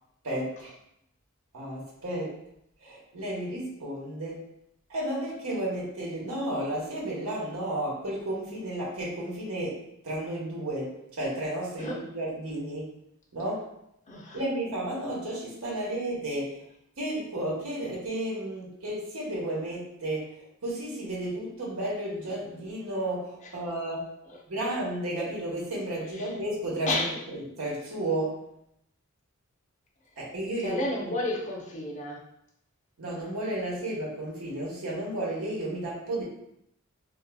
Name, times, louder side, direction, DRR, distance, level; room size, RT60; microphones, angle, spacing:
voice 1, 0.2-0.7 1.5-2.3 2.8-4.4 4.9-12.9 13.3-13.7 14.3-16.6 17.0-24.1 24.5-28.4 30.2-31.1 33.0-36.2, right 1 dB, 85° right, -4 dB, 1.0 m, -33 dB
voice 2, 14.1-14.4 24.3-24.4 26.1-26.3 26.9-27.2 30.6-32.2, left 2 dB, 35° left, -1 dB, 0.5 m, -31 dB
3.7 x 2.6 x 2.2 m, 0.77 s
head